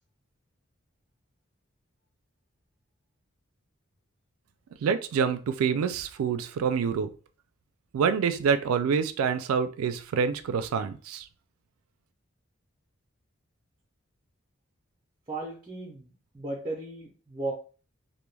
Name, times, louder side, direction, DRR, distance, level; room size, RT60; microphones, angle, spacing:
voice 1, 4.8-7.1 7.9-11.2, right 6 dB, 90° right, 11 dB, 0.3 m, -26 dB
voice 2, 15.3-17.5, right 2 dB, 20° right, -2 dB, 0.5 m, -36 dB
2.2 x 2.1 x 3.1 m, 0.37 s
head